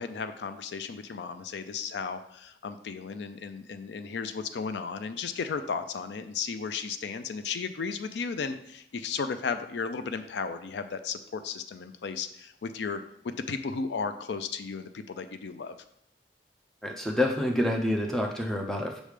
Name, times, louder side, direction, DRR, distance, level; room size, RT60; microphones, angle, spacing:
voice 1, 0.0-15.8, left 5 dB, 80° left, 10 dB, 0.4 m, -34 dB
voice 2, 16.8-19.0, left 1 dB, 5° left, 1 dB, 0.6 m, -27 dB
6.3 x 3.3 x 5.0 m, 0.73 s
head